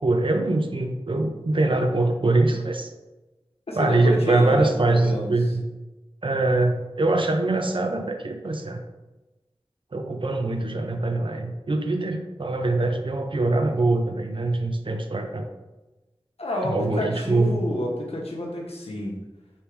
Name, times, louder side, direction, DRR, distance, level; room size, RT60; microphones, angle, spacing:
voice 1, 0.0-2.9 3.7-5.6 6.2-8.8 9.9-15.5 16.6-17.6, right 2 dB, 55° right, 5 dB, 0.5 m, -23 dB
voice 2, 3.7-5.3 16.4-19.2, equal, 75° left, -1 dB, 0.9 m, -29 dB
3.5 x 2.8 x 4.5 m, 1.1 s
wide cardioid pair, 40°, 10 cm